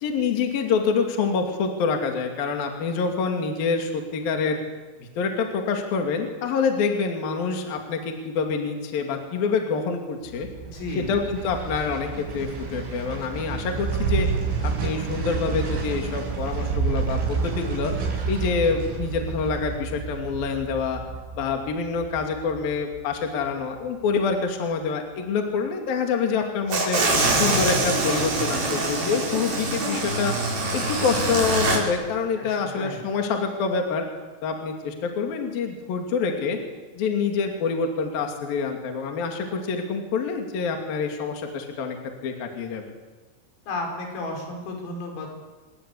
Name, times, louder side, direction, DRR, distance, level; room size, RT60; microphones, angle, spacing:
voice 1, 0.0-4.6 5.0-10.5 11.0-14.3 14.6-17.9 18.3-21.0 21.4-27.0 27.4-30.3 30.7-34.1 34.4-36.6 37.0-42.0 42.2-42.9, left 5 dB, 50° left, 3 dB, 3.9 m, -26 dB
sound 1, 10.3-23.4 23.8-23.9, right 5 dB, 70° right, 8.9 m, -29 dB
voice 2, 10.6-11.1 32.4-33.0 43.7-45.3, left 2 dB, 75° left, 2 dB, 7.9 m, -33 dB
sound 2, 26.7-31.8, right 2 dB, 45° right, 7.8 m, -24 dB
28.5 x 21.0 x 8.5 m, 1.3 s
omnidirectional pair, 6.0 m